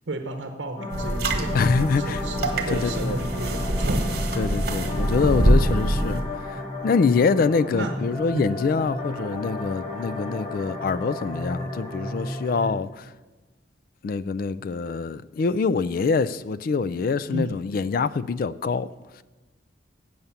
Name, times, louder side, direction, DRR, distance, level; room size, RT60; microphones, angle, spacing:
voice 1, 0.1-4.1 7.7-8.0 8.3-8.5 17.3-17.6, right 2 dB, 90° right, 0.8 m, -33 dB
sound 1, 0.8-12.7, left 2 dB, 30° left, 1.3 m, -33 dB
sound 2, 0.9-6.2, right 1 dB, 60° right, 1.3 m, -24 dB
voice 2, 1.5-2.2 2.7-3.2 4.4-13.1 14.0-19.2, left 4 dB, 50° left, 0.3 m, -25 dB
7.8 x 7.2 x 6.9 m
head